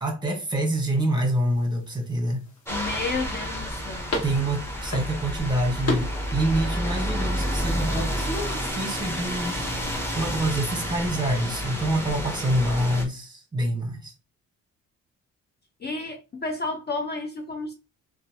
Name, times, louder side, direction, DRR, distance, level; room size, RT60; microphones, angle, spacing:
voice 1, 0.0-2.4 4.2-9.6 10.1-14.1, right 1 dB, 15° right, 1.1 m, -26 dB
sound 1, 0.8-8.5, left 1 dB, 55° left, 1.3 m, -37 dB
voice 2, 2.7-4.1 15.8-17.7, left 3 dB, 35° left, 0.5 m, -31 dB
sound 2, 2.7-13.0, equal, 10° left, 0.9 m, -30 dB
3.0 x 2.3 x 2.8 m
cardioid pair, 90°, 30 cm